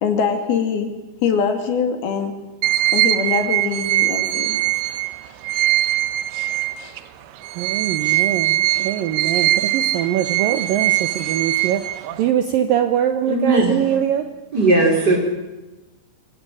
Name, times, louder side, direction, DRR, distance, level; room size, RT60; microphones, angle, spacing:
voice 1, 0.0-0.9 1.2-2.3 2.9-4.6, left 6 dB, 65° left, 6 dB, 4.0 m, -22 dB
sound 1, 2.6-7.0 7.4-12.3, right 15 dB, 85° right, 3.3 m, -21 dB
voice 2, 7.6-14.2, right 10 dB, 70° right, 8 dB, 2.3 m, -22 dB
voice 3, 13.3-13.7 14.5-15.2, right 2 dB, 25° right, 2 dB, 4.2 m, -17 dB
23.5 x 18.0 x 9.8 m, 1.1 s
omnidirectional pair, 4.9 m